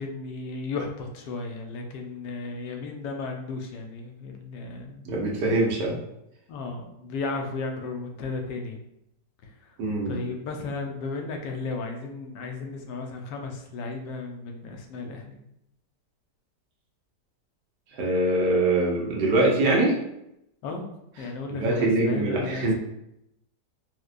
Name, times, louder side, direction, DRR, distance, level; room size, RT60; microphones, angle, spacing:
voice 1, 0.0-5.1 6.5-8.8 10.1-15.4 20.6-22.7, left 3 dB, 85° left, 3 dB, 1.3 m, -34 dB
voice 2, 5.0-6.0 9.8-10.2 17.9-20.0 21.5-22.7, right 2 dB, 85° right, -2 dB, 1.4 m, -23 dB
4.5 x 2.1 x 2.4 m, 0.82 s
omnidirectional pair, 1.8 m